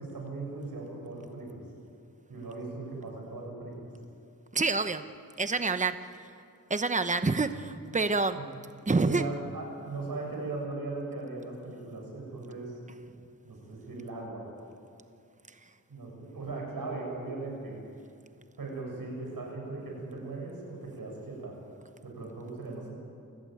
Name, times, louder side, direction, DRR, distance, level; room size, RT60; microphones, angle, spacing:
voice 1, 0.0-1.6 2.3-3.7 8.3-8.4 8.9-12.8 13.4-14.5 15.9-17.8 18.6-21.6 22.0-22.9, right 3 dB, 75° right, -1 dB, 7.5 m, -38 dB
voice 2, 4.5-5.0 5.4-6.0 6.7-8.4 8.9-9.2, right 3 dB, 20° right, 10 dB, 0.9 m, -27 dB
28.5 x 15.0 x 9.2 m, 2.5 s
wide cardioid pair, 110°, 35 cm